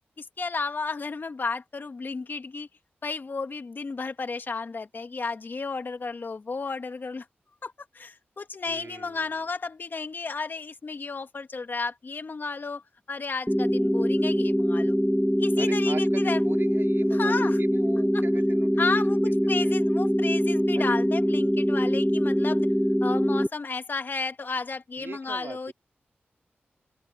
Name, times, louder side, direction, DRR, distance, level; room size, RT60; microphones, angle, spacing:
voice 1, 0.2-2.7 3.0-7.3 7.6-12.8 13.1-15.0 15.4-16.4 17.1-17.6 18.1-18.2 18.8-19.2 19.5-22.7 23.0-25.7, left 4 dB, 55° left, 2.1 m, -33 dB
voice 2, 8.7-9.4 15.6-18.7 19.1-19.8 20.7-21.0 25.0-25.7, right 5 dB, 70° right, 3.7 m, -41 dB
sound 1, 13.5-23.5, equal, ahead, 0.8 m, -23 dB
open air
wide cardioid pair, 75°, 4 cm